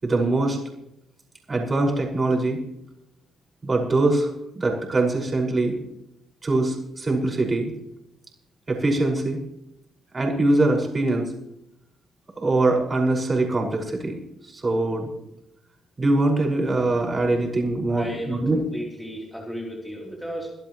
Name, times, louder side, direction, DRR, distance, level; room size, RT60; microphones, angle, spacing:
voice 1, 0.0-0.6 1.5-2.6 3.6-5.8 6.4-7.7 8.7-9.4 10.1-11.3 12.4-14.2 14.4-15.1 16.0-18.6, right 2 dB, 30° right, -1 dB, 5.6 m, -23 dB
voice 2, 17.9-20.5, equal, 5° left, -2 dB, 3.5 m, -34 dB
24.0 x 12.0 x 3.2 m, 0.82 s
cardioid pair, 90°, 0 cm